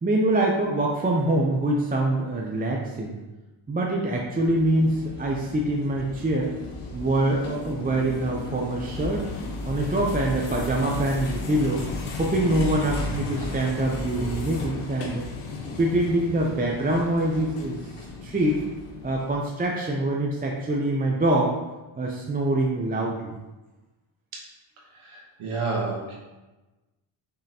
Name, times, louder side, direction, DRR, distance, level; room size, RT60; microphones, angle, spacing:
voice 1, 0.0-3.2 3.7-6.5 6.9-9.3 9.6-11.8 12.2-15.2 15.8-17.8 18.2-18.6 19.0-21.6 22.0-23.3, right 1 dB, 20° right, -2 dB, 0.5 m, -24 dB
sound 1, 4.4-19.4, left 3 dB, 85° left, 1.0 m, -35 dB
voice 2, 25.0-26.2, right 3 dB, 75° right, -2 dB, 1.1 m, -30 dB
5.2 x 3.6 x 2.8 m, 1.1 s
cardioid pair, 80°, 50 cm